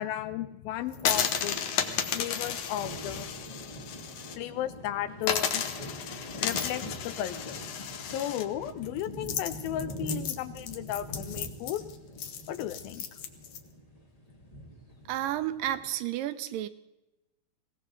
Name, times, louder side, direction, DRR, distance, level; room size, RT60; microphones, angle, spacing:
voice 1, 0.0-1.6 2.1-3.3 4.4-5.6 6.4-7.6 8.1-11.8 12.5-13.1, left 12 dB, 85° left, 13 dB, 2.6 m, -34 dB
sound 1, 0.9-4.4 4.7-4.8 5.2-13.6, left 8 dB, 65° left, 1.7 m, -33 dB
sound 2, 0.9-15.9, equal, 30° left, 0.7 m, -44 dB
voice 2, 15.1-16.7, right 12 dB, 80° right, 11 dB, 2.2 m, -31 dB
21.0 x 18.0 x 3.9 m, 0.96 s
omnidirectional pair, 4.1 m